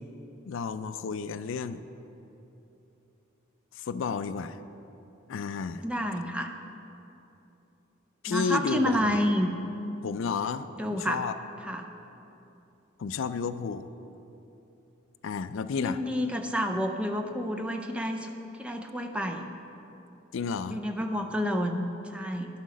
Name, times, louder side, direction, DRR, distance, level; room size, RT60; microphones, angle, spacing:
voice 1, 0.5-1.8 3.7-4.6 5.3-5.8 8.2-9.1 10.0-11.3 13.0-13.9 15.2-16.0 20.3-20.8, left 5 dB, 65° left, 11 dB, 0.4 m, -32 dB
voice 2, 5.8-6.5 8.3-9.5 10.8-11.2 11.6-11.9 15.8-19.5 20.7-22.5, equal, 5° right, 5 dB, 0.5 m, -29 dB
11.5 x 5.8 x 6.2 m, 3.0 s
head